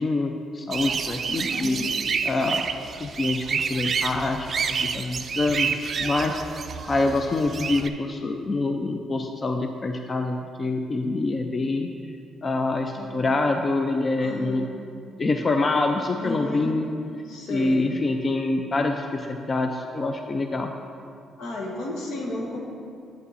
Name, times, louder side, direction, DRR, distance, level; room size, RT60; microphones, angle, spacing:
voice 1, 0.0-1.8 2.2-2.7 3.0-6.4 6.9-11.9 12.4-14.7 15.2-16.9 17.5-20.7, left 2 dB, 35° left, 4 dB, 0.4 m, -26 dB
sound 1, 0.7-7.9, right 6 dB, 50° right, 0.4 m, -29 dB
voice 2, 1.3-1.9 13.0-13.1 14.2-14.8 16.2-16.7 17.3-18.0 21.4-22.6, left 2 dB, 80° left, -1 dB, 1.3 m, -33 dB
8.0 x 5.6 x 4.1 m, 2.4 s
cardioid pair, 90°, 0 cm